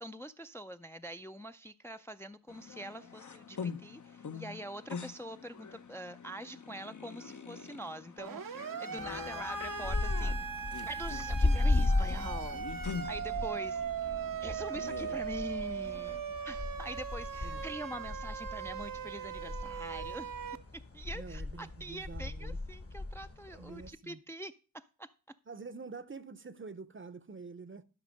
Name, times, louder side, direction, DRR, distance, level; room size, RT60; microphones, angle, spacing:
voice 1, 0.0-10.5 10.8-13.8 14.4-16.2 16.4-20.3 20.9-25.1, right 1 dB, 10° left, 0.4 m, -44 dB
sound 1, 2.5-16.2, left 6 dB, 55° left, 0.8 m, -45 dB
Siren, 8.2-20.6, right 7 dB, 70° right, 0.7 m, -39 dB
voice 2, 8.9-9.2 13.0-13.1 17.4-17.6 21.1-22.6 23.5-24.2 25.5-27.8, right 4 dB, 35° right, 0.7 m, -47 dB
sound 2, 9.0-23.9, left 2 dB, 40° left, 1.2 m, -36 dB
12.0 x 5.2 x 5.2 m
wide cardioid pair, 60°, 34 cm